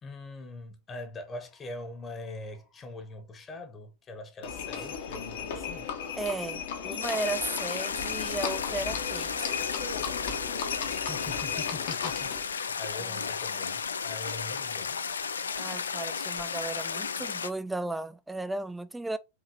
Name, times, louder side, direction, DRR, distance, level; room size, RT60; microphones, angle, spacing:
voice 1, 0.0-5.9 11.0-14.9, left 2 dB, 20° left, 1.0 m, -43 dB
Livestock farm animals working animals, 4.4-12.5, left 7 dB, 55° left, 0.9 m, -35 dB
voice 2, 6.2-9.7 12.9-13.3 15.6-19.2, right 2 dB, 5° right, 0.4 m, -35 dB
sound 1, 7.0-17.5, left 6 dB, 70° left, 0.3 m, -34 dB
4.9 x 2.9 x 2.8 m
figure-of-eight pair, 90°, 0 cm